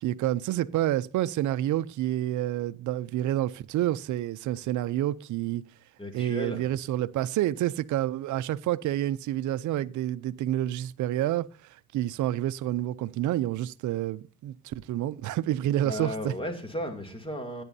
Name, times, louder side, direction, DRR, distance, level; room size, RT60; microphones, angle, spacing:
voice 1, 0.0-5.6 6.1-11.5 11.9-16.3, right 13 dB, 80° right, 0.6 m, -28 dB
voice 2, 6.0-6.6 15.8-17.6, equal, 15° left, 2.8 m, -34 dB
16.0 x 10.0 x 2.7 m
cardioid pair, 90°, 30 cm